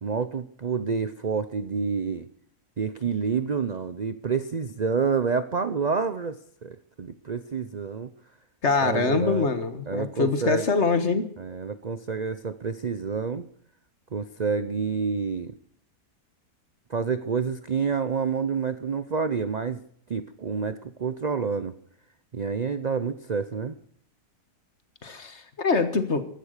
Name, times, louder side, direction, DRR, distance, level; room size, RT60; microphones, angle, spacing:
voice 1, 0.0-2.3 2.8-8.1 8.8-9.5 9.9-10.7 11.4-13.5 14.1-15.5 16.9-19.8 20.1-21.7 22.3-23.8, right 5 dB, 50° right, 12 dB, 0.5 m, -28 dB
voice 2, 8.6-11.3 25.0-26.2, left 4 dB, 45° left, 10 dB, 1.7 m, -24 dB
15.5 x 12.0 x 6.6 m, 0.64 s
omnidirectional pair, 1.7 m